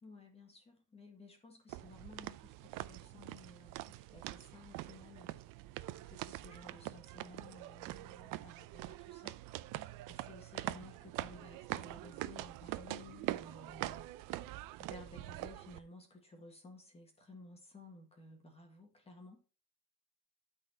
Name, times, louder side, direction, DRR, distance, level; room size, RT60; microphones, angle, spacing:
voice 1, 0.0-5.3 6.1-9.4 10.1-14.1 14.8-19.4, left 2 dB, 15° left, 1.7 m, -55 dB
sound 1, 1.7-15.8, right 16 dB, 70° right, 0.6 m, -44 dB
12.0 x 4.3 x 4.4 m
cardioid pair, 165°, 34 cm